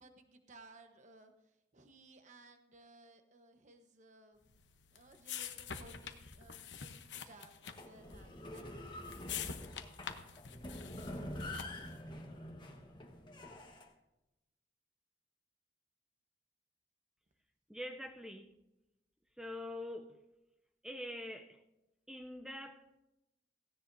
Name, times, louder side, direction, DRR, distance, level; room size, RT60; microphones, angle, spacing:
voice 1, 0.0-4.5 4.9-9.1, right 2 dB, 40° right, 1.1 m, -60 dB
sound 1, 4.5-12.0, left 7 dB, 85° left, 1.0 m, -47 dB
sound 2, 7.6-13.9, left 1 dB, 25° left, 1.4 m, -46 dB
voice 2, 17.7-18.5 19.4-20.1 20.8-21.6 22.1-23.0, left 1 dB, 5° right, 0.6 m, -44 dB
17.0 x 16.0 x 2.7 m
head